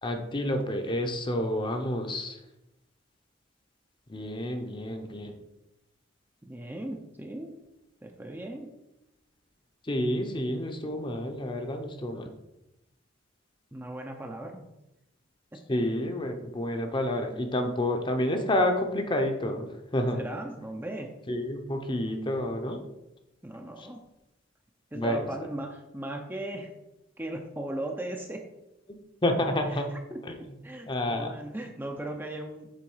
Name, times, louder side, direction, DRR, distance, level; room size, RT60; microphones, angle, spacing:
voice 1, 0.0-2.4 4.1-5.3 9.9-12.2 15.7-19.7 19.9-20.2 21.3-22.8 24.9-25.3 29.2-29.9 30.2-30.4 30.9-31.3, left 1 dB, 25° left, 5 dB, 0.8 m, -29 dB
voice 2, 6.5-7.6 8.0-8.7 13.7-14.7 15.5-15.6 20.1-21.1 23.4-24.0 24.9-26.7 27.2-28.5 29.7-30.2 30.6-32.7, right 1 dB, 10° right, 3 dB, 0.6 m, -37 dB
7.6 x 3.8 x 5.5 m, 0.92 s
head